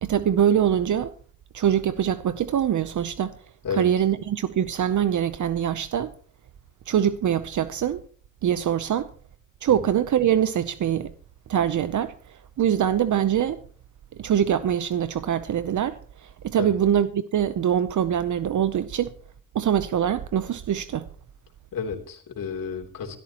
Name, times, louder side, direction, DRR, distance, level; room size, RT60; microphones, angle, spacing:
voice 1, 0.0-1.1 1.5-3.4 3.7-6.1 6.9-8.0 8.4-9.1 9.6-11.1 11.5-13.6 14.2-19.1 19.5-21.1, right 9 dB, 60° right, 0.7 m, -23 dB
voice 2, 21.7-23.2, left 6 dB, 75° left, 3.3 m, -31 dB
23.5 x 13.0 x 3.0 m
cardioid pair, 75°, 34 cm